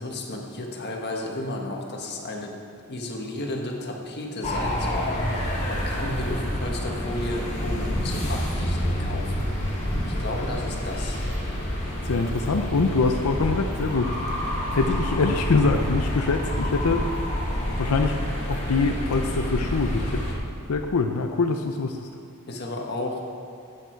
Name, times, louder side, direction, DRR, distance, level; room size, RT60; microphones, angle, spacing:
voice 1, 0.0-2.6 2.9-9.5 10.0-11.2 22.5-23.2, left 1 dB, 50° left, 0 dB, 1.6 m, -33 dB
sound 1, 4.4-20.3, equal, 30° left, 2.3 m, -28 dB
sound 2, 5.5-13.4, equal, 5° right, 1.3 m, -42 dB
voice 2, 12.0-14.1 14.7-17.0 17.8-18.2 18.5-22.1, left 3 dB, 90° left, 4 dB, 0.6 m, -24 dB
15.0 x 8.8 x 4.6 m, 2.4 s
head